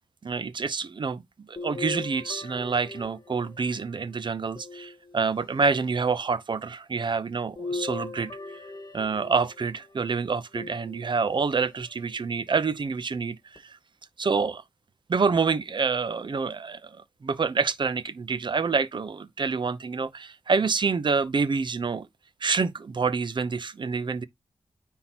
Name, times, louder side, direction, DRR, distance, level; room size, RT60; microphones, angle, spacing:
voice 1, 0.2-8.6 8.9-13.8 14.2-14.6 15.1-22.1 22.4-24.3, right 5 dB, 50° right, 0.8 m, -27 dB
sound 1, 1.6-3.8 4.6-5.6 7.6-9.6 10.6-11.4 12.1-12.2 13.6-13.7, left 3 dB, 45° left, 1.6 m, -38 dB
9.6 x 3.8 x 2.9 m
cardioid pair, 70°, 10 cm